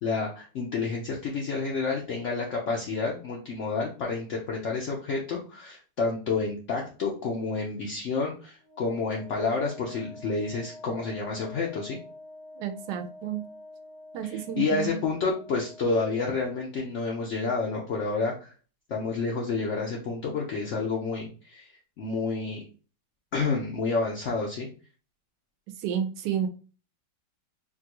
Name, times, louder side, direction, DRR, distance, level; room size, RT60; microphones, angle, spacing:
voice 1, 0.0-12.0 14.2-18.5 18.9-21.7 22.0-22.6 23.3-24.7, left 4 dB, 70° left, -2 dB, 0.7 m, -29 dB
Wind instrument woodwind instrument, 8.6-16.4, left 1 dB, 85° left, 1.7 m, -48 dB
voice 2, 12.6-13.4 14.1-15.0 25.8-26.5, right 9 dB, 80° right, 7 dB, 1.2 m, -31 dB
3.6 x 2.2 x 2.9 m, 0.38 s
omnidirectional pair, 1.9 m